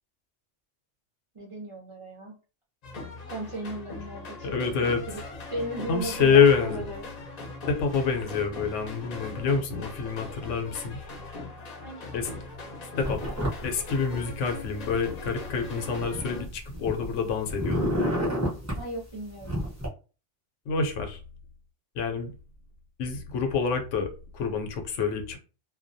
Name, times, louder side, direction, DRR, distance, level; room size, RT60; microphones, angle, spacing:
voice 1, 1.3-2.4 3.3-4.5 4.8-5.2 5.5-7.1 11.8-12.2 18.8-19.6, right 1 dB, 60° right, -3 dB, 0.3 m, -36 dB
sound 1, 2.8-16.4, left 3 dB, 50° left, 0.5 m, -40 dB
voice 2, 4.4-5.0 5.9-6.8 7.7-11.0 12.1-12.3 13.0-13.2 13.6-17.9 20.7-21.2 21.9-22.3 23.0-25.4, left 5 dB, 85° left, 4 dB, 0.9 m, -26 dB
sound 2, 13.0-13.7 14.0-14.9 15.5-17.2 17.4-18.8 19.4-19.9, equal, 15° right, 0.7 m, -29 dB
2.3 x 2.2 x 2.6 m, 0.35 s
omnidirectional pair, 1.3 m